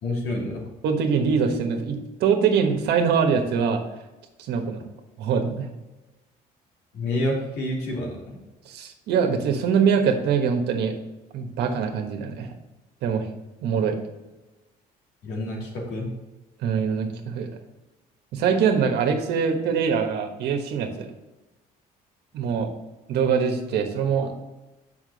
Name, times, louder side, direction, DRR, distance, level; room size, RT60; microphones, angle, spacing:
voice 1, 0.0-0.7 6.9-8.4 15.2-16.1, left 1 dB, 80° left, -2 dB, 2.9 m, -28 dB
voice 2, 0.8-3.8 4.5-4.8 5.2-5.7 8.6-10.9 11.3-12.5 13.0-13.3 13.6-14.0 16.6-17.5 18.3-21.1 22.3-22.7 23.1-24.4, right 6 dB, 75° right, 4 dB, 1.3 m, -23 dB
7.5 x 5.8 x 4.0 m, 1.1 s
cardioid pair, 110°, 17 cm